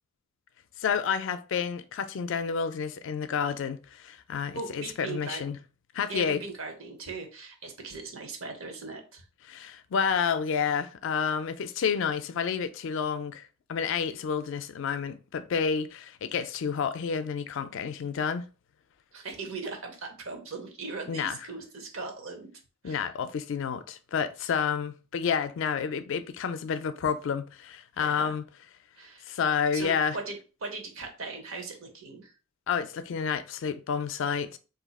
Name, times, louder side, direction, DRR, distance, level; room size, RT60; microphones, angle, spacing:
voice 1, 0.8-5.6 5.9-6.4 9.5-18.4 21.1-21.4 22.8-28.4 29.2-30.2 32.7-34.6, left 6 dB, 65° left, 0.4 m, -30 dB
voice 2, 4.5-5.4 6.1-9.3 19.1-22.5 22.8-23.1 28.0-28.4 29.0-29.3 29.7-32.3, right 3 dB, 80° right, 0.8 m, -39 dB
2.6 x 2.3 x 4.0 m
head